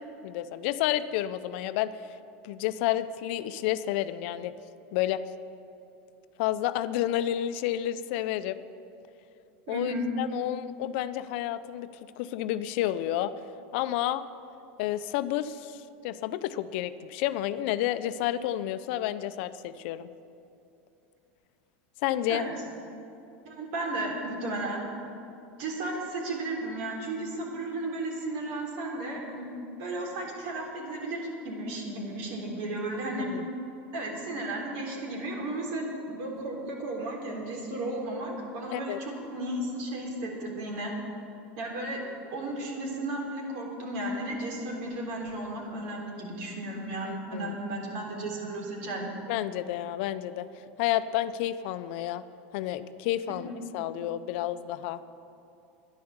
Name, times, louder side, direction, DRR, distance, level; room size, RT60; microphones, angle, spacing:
voice 1, 0.2-1.9 2.4-4.5 4.9-5.2 6.4-8.6 9.7-11.9 12.2-13.3 13.7-14.2 14.8-15.8 16.0-20.1 22.0-22.4 33.2-33.5 38.7-39.0 47.0-47.5 49.3-50.5 50.8-52.2 52.5-55.0, left 13 dB, 65° left, 13 dB, 0.5 m, -30 dB
voice 2, 9.7-10.1 22.3-22.5 23.5-24.8 25.6-29.5 29.8-33.3 33.9-40.9 41.6-42.0 42.3-49.1 53.3-53.6, right 1 dB, 70° right, 0 dB, 3.4 m, -34 dB
10.5 x 10.5 x 7.0 m, 2.7 s
supercardioid pair, 115°, 6 cm